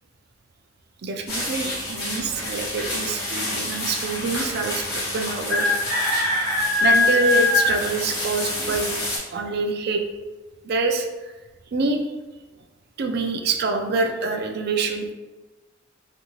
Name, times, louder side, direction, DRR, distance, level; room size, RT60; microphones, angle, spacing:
voice 1, 1.0-5.7 6.3-6.4 6.8-8.9 9.3-10.0 10.6-11.1 11.7-12.0 13.0-15.1, right 3 dB, 55° right, 4 dB, 0.4 m, -26 dB
sound 1, 1.3-9.2, left 2 dB, 55° left, 1.1 m, -24 dB
2.7 x 2.6 x 2.8 m, 1.2 s
head